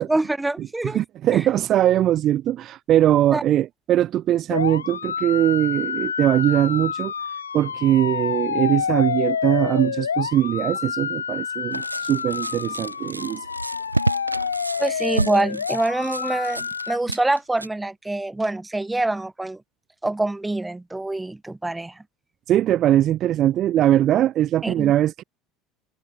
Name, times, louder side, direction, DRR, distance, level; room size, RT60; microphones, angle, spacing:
voice 1, 0.0-1.0 1.3-1.4 3.3-3.4 14.8-19.6 20.0-22.0 24.6-24.9, right 2 dB, 10° right, 3.9 m, -25 dB
voice 2, 0.8-7.1 7.5-13.5 22.5-25.2, right 12 dB, 45° right, 1.3 m, -21 dB
sound 1, 4.5-17.0, left 6 dB, 80° left, 0.7 m, -28 dB
sound 2, 11.7-17.7, right 2 dB, 90° right, 1.2 m, -30 dB
figure-of-eight pair, 70°, 0 cm